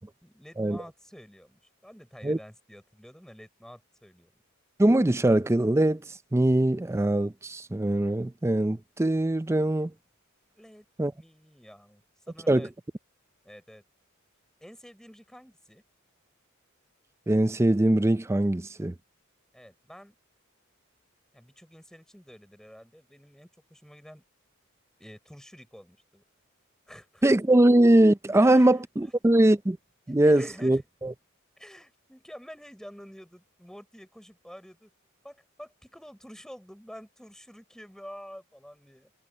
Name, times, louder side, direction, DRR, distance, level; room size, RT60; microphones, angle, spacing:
voice 1, 0.2-4.3 10.6-10.9 11.1-12.7 13.4-13.8 14.6-15.8 19.5-20.1 21.3-24.2 25.0-26.2 26.9-27.2 28.3-29.1 30.1-30.8 31.6-34.9 35.2-39.1, equal, 5° left, 6.2 m, -49 dB
voice 2, 4.8-9.9 11.0-11.1 12.5-12.7 17.3-18.9 27.2-29.8 30.1-31.1, right 1 dB, 15° right, 0.4 m, -22 dB
head